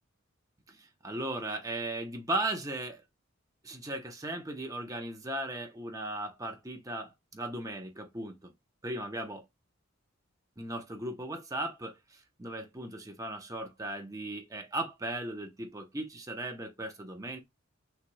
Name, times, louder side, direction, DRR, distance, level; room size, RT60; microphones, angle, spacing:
voice 1, 0.7-3.0 3.6-8.5 8.8-9.4 10.6-17.4, right 1 dB, 15° right, 0.8 m, -37 dB
6.4 x 3.2 x 2.2 m
head